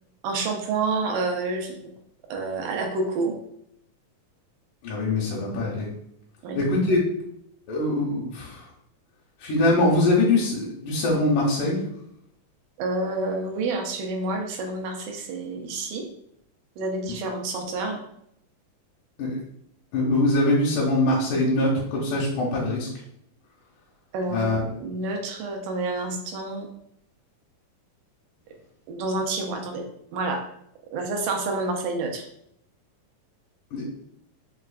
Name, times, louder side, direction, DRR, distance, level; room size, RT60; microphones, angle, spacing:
voice 1, 0.2-1.8 2.3-3.4 6.4-6.6 12.8-16.0 16.8-18.0 24.1-24.5 24.8-26.7 28.9-29.8 30.1-30.4 30.9-32.2, right 3 dB, 85° right, 3 dB, 2.2 m, -28 dB
voice 2, 4.8-5.9 6.6-7.0 7.7-8.6 9.4-11.8 19.2-19.4 19.9-22.9 24.3-24.6 33.7-33.8, left 2 dB, 85° left, -5 dB, 2.3 m, -23 dB
5.6 x 2.2 x 2.4 m, 0.73 s
omnidirectional pair, 3.7 m